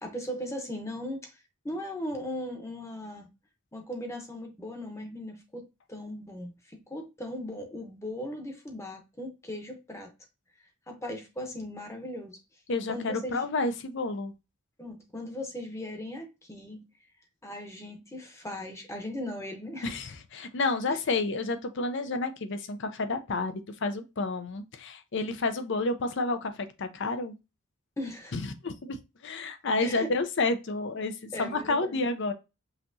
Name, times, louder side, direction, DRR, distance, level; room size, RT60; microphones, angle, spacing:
voice 1, 0.0-3.3 3.7-10.1 10.6-12.4 12.9-13.4 14.8-16.8 17.4-19.9 20.9-21.0 28.0-28.3 29.8-30.1 31.3-32.0, left 1 dB, 15° left, 0.9 m, -38 dB
voice 2, 12.7-14.3 19.8-27.3 28.3-29.0 29.2-32.3, left 3 dB, 60° left, 0.6 m, -30 dB
5.7 x 2.9 x 2.7 m
head